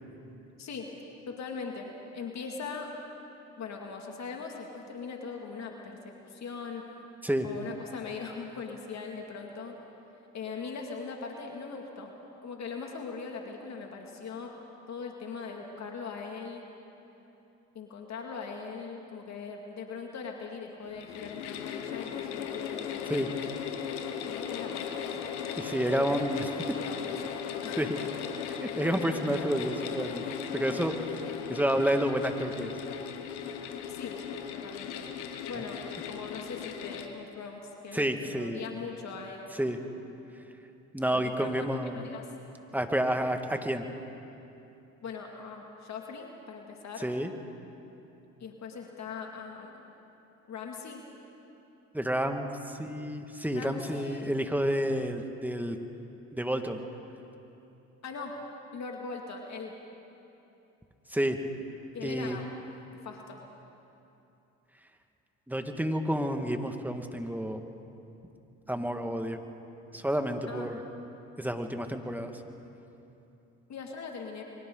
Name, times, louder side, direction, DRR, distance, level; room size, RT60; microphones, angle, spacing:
voice 1, 1.3-2.9 3.6-6.0 6.3-6.8 7.4-9.7 10.3-12.1 12.4-14.5 14.9-16.6 17.7-23.4 24.2-25.2 25.6-26.2 26.8-27.4 27.6-28.1 33.9-34.2 34.5-35.1 35.5-35.8 36.1-39.7 41.1-42.2 45.0-47.1 48.4-49.8 50.5-51.0 53.5-54.3 58.0-58.3 58.7-59.7 61.9-62.5 62.9-63.4 70.5-70.7 73.7-74.4, left 5 dB, 55° left, 1 dB, 2.4 m, -40 dB
sound 1, 20.8-37.1, left 8 dB, 90° left, 1.2 m, -37 dB
voice 2, 25.6-26.5 27.8-28.0 28.6-30.2 30.5-31.2 31.5-32.8 35.6-35.7 37.9-38.6 39.5-39.8 40.9-42.1 42.7-43.9 47.0-47.3 51.9-55.8 56.3-56.8 61.1-61.4 62.0-62.4 65.5-67.6 68.7-69.4 69.9-70.8 71.4-72.4, right 1 dB, 5° right, 5 dB, 1.9 m, -30 dB
29.0 x 23.5 x 4.0 m, 2.9 s
hypercardioid pair, 55°, 33 cm